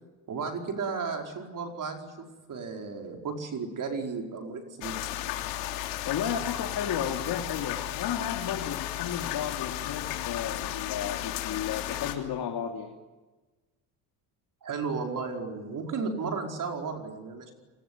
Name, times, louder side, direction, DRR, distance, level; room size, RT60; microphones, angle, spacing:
voice 1, 0.3-5.1 14.6-17.5, right 4 dB, 45° right, 3 dB, 4.9 m, -34 dB
sound 1, 4.8-12.1, left 14 dB, 90° left, 3.4 m, -34 dB
voice 2, 6.0-12.9, left 8 dB, 55° left, 3 dB, 3.0 m, -33 dB
30.0 x 20.5 x 9.7 m, 1.2 s
supercardioid pair, 95°, 43 cm